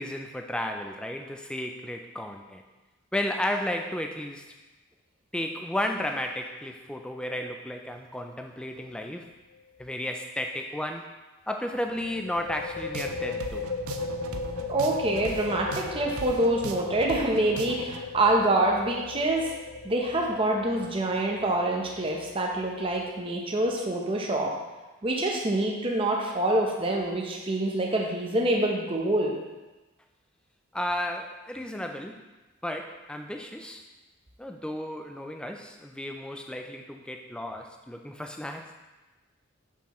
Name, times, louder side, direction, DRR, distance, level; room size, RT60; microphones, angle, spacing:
voice 1, 0.0-2.6 3.1-4.5 5.3-9.3 9.8-11.1 11.5-13.7 30.7-32.2 32.6-33.8 34.4-38.7, left 1 dB, 5° left, 4 dB, 0.3 m, -33 dB
sound 1, 8.7-9.0 9.3-9.4 11.9-23.2, left 4 dB, 65° left, 0.5 m, -37 dB
sound 2, 12.8-18.0, right 4 dB, 85° right, 0.5 m, -40 dB
voice 2, 14.7-19.5 19.8-24.5 25.0-29.3, right 1 dB, 25° right, 0 dB, 0.7 m, -26 dB
6.6 x 5.6 x 3.0 m, 1.1 s
head